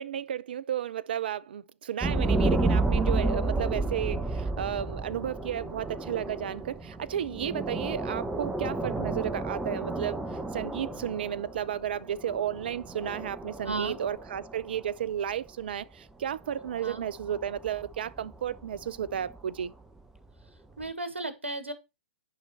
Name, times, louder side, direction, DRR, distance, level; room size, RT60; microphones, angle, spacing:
voice 1, 0.0-10.2 10.5-19.7, right 10 dB, 55° right, 0.7 m, -33 dB
sound 1, 2.0-14.9 16.5-19.6 20.8-20.9, right 2 dB, 5° right, 1.2 m, -31 dB
voice 2, 13.6-14.0 16.8-17.0 20.8-21.7, right 3 dB, 85° right, 2.1 m, -34 dB
10.5 x 5.2 x 4.3 m
figure-of-eight pair, 115°, 6 cm